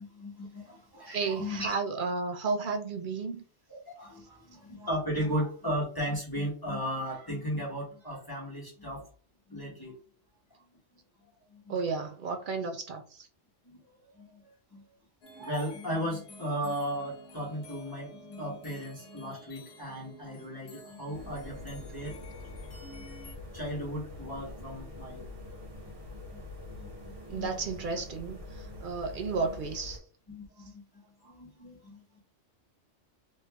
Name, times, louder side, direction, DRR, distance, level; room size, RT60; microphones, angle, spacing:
voice 1, 0.0-1.8 3.7-9.1 9.5-10.0 10.5-10.6 11.5-11.7 13.6-13.8 14.1-14.8 15.4-22.2 23.0-23.1 23.5-25.3 26.3-26.4 26.8-27.5 30.3-32.2, equal, 20° left, 1.0 m, -36 dB
voice 2, 1.1-3.4 11.7-13.3 27.3-30.0, right 4 dB, 60° right, 0.5 m, -33 dB
sound 1, 15.2-23.4, equal, 65° left, 1.0 m, -51 dB
sound 2, 21.1-30.0, left 2 dB, 30° right, 1.3 m, -45 dB
3.1 x 2.5 x 3.3 m
omnidirectional pair, 1.2 m